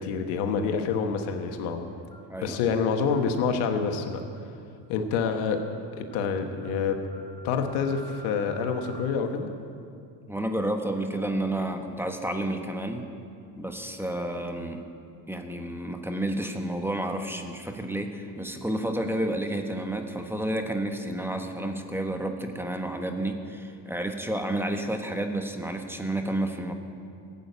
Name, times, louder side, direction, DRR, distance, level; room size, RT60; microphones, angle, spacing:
voice 1, 0.0-1.8 2.4-4.2 4.9-5.6 5.9-7.0 7.4-9.5, left 5 dB, 80° left, 6 dB, 1.4 m, -27 dB
sound 1, 2.1-2.4 3.1-3.3 4.1-4.4 5.1-5.3 5.6-5.8 6.1-6.3 6.6-9.1, right 3 dB, 50° left, 1.8 m, -49 dB
voice 2, 10.3-13.1 13.6-14.8 15.3-26.7, right 1 dB, 5° right, 4 dB, 1.4 m, -30 dB
14.5 x 8.5 x 8.5 m, 2.5 s
supercardioid pair, 80°, 46 cm